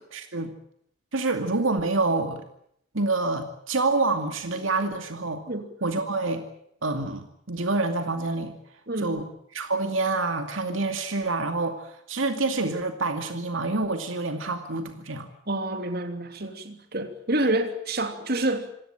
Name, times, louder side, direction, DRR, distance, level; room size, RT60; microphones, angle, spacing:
voice 1, 0.1-0.5 1.1-2.4 2.9-5.4 5.8-6.4 6.8-8.6 9.0-9.3 9.5-15.3, right 3 dB, 80° right, 7 dB, 2.4 m, -27 dB
voice 2, 8.9-9.2 15.5-18.7, right 1 dB, 50° right, 7 dB, 3.0 m, -28 dB
27.0 x 17.0 x 9.1 m, 0.71 s
head